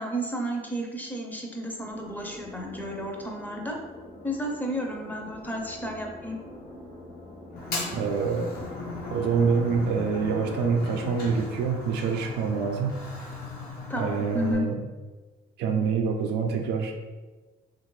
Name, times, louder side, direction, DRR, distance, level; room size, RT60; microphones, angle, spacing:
voice 1, 0.0-3.8 4.2-6.4 13.9-14.7, equal, 10° left, 1 dB, 0.6 m, -32 dB
sound 1, 1.8-12.5, left 1 dB, 35° left, 0.9 m, -46 dB
Bowed string instrument, 7.5-11.8, left 3 dB, 85° left, 0.6 m, -39 dB
Fire, 7.6-14.5, left 2 dB, 60° left, 0.9 m, -39 dB
voice 2, 7.9-8.5 9.1-12.9 14.0-14.8 15.6-16.9, right 5 dB, 80° right, 3 dB, 0.5 m, -26 dB
3.1 x 2.5 x 3.1 m, 1.2 s
cardioid pair, 110°, 17 cm